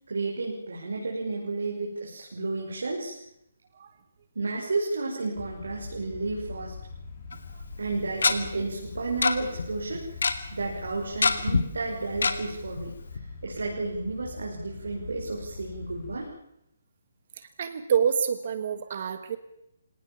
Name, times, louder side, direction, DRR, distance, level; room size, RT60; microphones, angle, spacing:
voice 1, 0.1-3.1 4.3-6.7 7.8-10.0 10.5-12.9 13.4-16.3, right 3 dB, 85° right, -2 dB, 6.3 m, -32 dB
sound 1, 5.4-16.2, left 4 dB, 30° left, 4.2 m, -43 dB
Tick-tock, 7.3-7.4 8.2-8.3 9.2-9.3 9.6-9.7 9.9-10.3 11.2-11.6 12.2-12.3 12.8-12.9 13.2-13.3, left 4 dB, 75° left, 2.4 m, -22 dB
voice 2, 17.4-19.4, right 7 dB, 40° right, 11 dB, 1.3 m, -27 dB
25.0 x 18.5 x 7.3 m, 0.80 s
hypercardioid pair, 175°, 0 cm